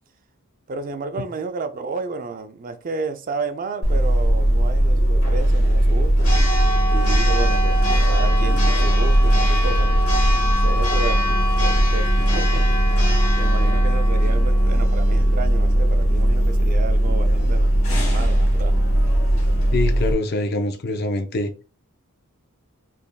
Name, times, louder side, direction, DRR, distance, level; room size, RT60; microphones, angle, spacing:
voice 1, 0.7-6.3 6.9-7.8 8.0-10.0 10.6-11.3 11.6-12.9 13.4-17.7 18.0-18.8, right 4 dB, 40° right, 0.4 m, -32 dB
Church bell, 3.8-20.1, right 1 dB, 65° left, 1.3 m, -18 dB
voice 2, 19.7-21.5, left 2 dB, 45° left, 0.6 m, -24 dB
4.1 x 3.4 x 2.2 m
head